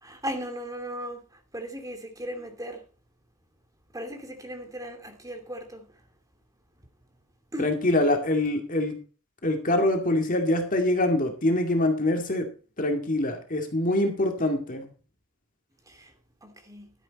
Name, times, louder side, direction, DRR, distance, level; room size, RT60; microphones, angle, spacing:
voice 1, 0.0-2.8 3.9-5.9 7.5-7.7 15.9-16.1 16.4-16.9, equal, 15° right, 2.7 m, -37 dB
voice 2, 7.6-8.9 9.4-12.5 12.8-14.9, left 1 dB, 40° left, 2.3 m, -24 dB
12.5 x 10.0 x 4.2 m
head